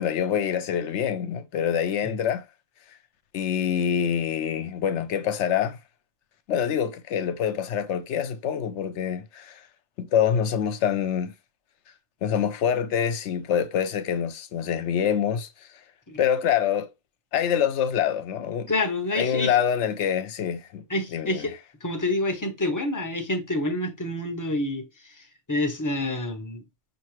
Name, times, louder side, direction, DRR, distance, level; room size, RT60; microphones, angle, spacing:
voice 1, 0.0-2.4 3.3-5.8 6.5-9.6 10.0-11.3 12.2-15.5 16.2-16.9 17.3-18.7 19.2-20.8 21.1-21.4, left 8 dB, 70° left, 0.9 m, -25 dB
voice 2, 18.7-19.6 20.9-21.5 21.8-26.6, left 2 dB, 20° left, 0.5 m, -28 dB
5.6 x 2.7 x 3.0 m
omnidirectional pair, 1.3 m